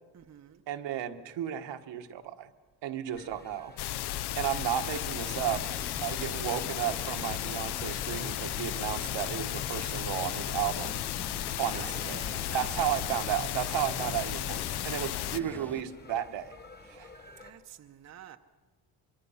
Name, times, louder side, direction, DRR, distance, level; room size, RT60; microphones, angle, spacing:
voice 1, 0.1-0.6 11.6-12.6 17.4-18.4, right 9 dB, 35° right, 7 dB, 0.8 m, -49 dB
voice 2, 0.7-2.5 2.8-3.7 4.3-5.7 6.0-11.0 11.6-16.5 16.9-17.1, right 10 dB, 75° right, 6 dB, 1.4 m, -33 dB
sound 1, 3.1-17.5, left 3 dB, 20° left, 1.5 m, -53 dB
sound 2, 3.8-15.4, left 14 dB, 60° left, 0.6 m, -34 dB
sound 3, 5.1-15.8, left 1 dB, 5° left, 0.7 m, -44 dB
24.0 x 23.5 x 5.7 m, 1.3 s
cardioid pair, 140°, 44 cm